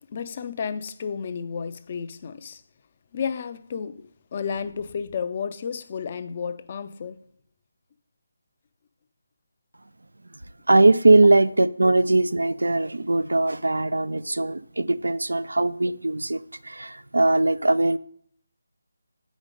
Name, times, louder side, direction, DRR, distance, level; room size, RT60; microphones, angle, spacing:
voice 1, 0.0-2.6 3.1-7.2, left 6 dB, 35° left, 0.5 m, -32 dB
voice 2, 10.7-18.0, right 2 dB, 90° right, 0.5 m, -20 dB
8.1 x 5.1 x 5.2 m
figure-of-eight pair, 160°, 0 cm